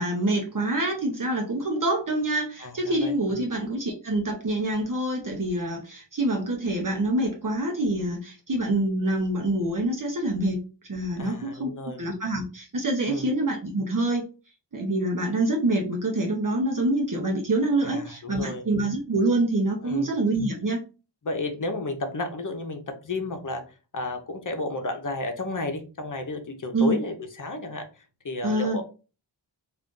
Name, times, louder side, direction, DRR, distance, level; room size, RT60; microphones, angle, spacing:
voice 1, 0.0-10.6 10.9-11.7 12.0-14.2 14.7-20.8 26.7-27.0 28.4-28.8, right 1 dB, 45° right, 1 dB, 0.7 m, -26 dB
voice 2, 2.6-3.4 11.2-12.0 13.1-13.3 17.8-18.6 19.8-20.1 21.2-23.6 23.9-28.8, left 2 dB, 45° left, 5 dB, 0.7 m, -32 dB
2.5 x 2.4 x 3.6 m, 0.33 s
wide cardioid pair, 65°, 46 cm